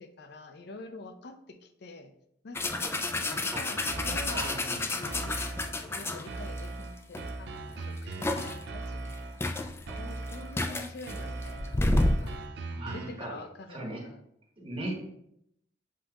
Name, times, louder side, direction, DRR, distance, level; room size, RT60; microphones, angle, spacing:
voice 1, 0.0-2.1 2.4-4.5 5.0-12.4 12.9-14.2, left 2 dB, 65° left, 8 dB, 0.5 m, -47 dB
sound 1, 2.5-6.6 7.1-7.3 7.7-8.6 9.1-9.2 9.4-12.3, left 2 dB, 15° left, 0.3 m, -30 dB
sound 2, 3.9-4.7 5.1-5.9 6.3-9.5 9.9-10.7 11.1-13.3, right 2 dB, 65° right, 0.5 m, -39 dB
voice 2, 4.3-5.0 12.7-13.4 13.7-14.0 14.6-15.0, right 1 dB, 30° right, -2 dB, 1.1 m, -38 dB
7.4 x 2.9 x 2.4 m, 0.76 s
head